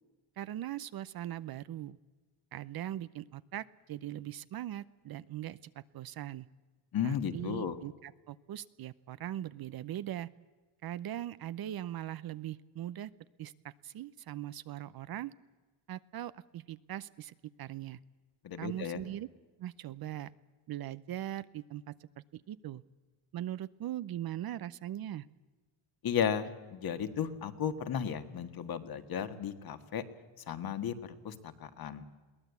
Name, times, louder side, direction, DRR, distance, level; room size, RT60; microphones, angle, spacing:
voice 1, 0.4-2.0 2.5-6.5 7.0-10.3 10.8-13.1 13.4-15.3 15.9-18.0 18.6-19.3 19.6-20.3 20.7-22.8 23.3-25.3, right 12 dB, 45° right, 16 dB, 0.7 m, -40 dB
voice 2, 6.9-7.8 18.4-19.0 26.0-30.0 30.5-32.1, left 8 dB, 45° left, 9 dB, 1.7 m, -34 dB
22.5 x 17.0 x 8.3 m, 1.3 s
cardioid pair, 120°, 50 cm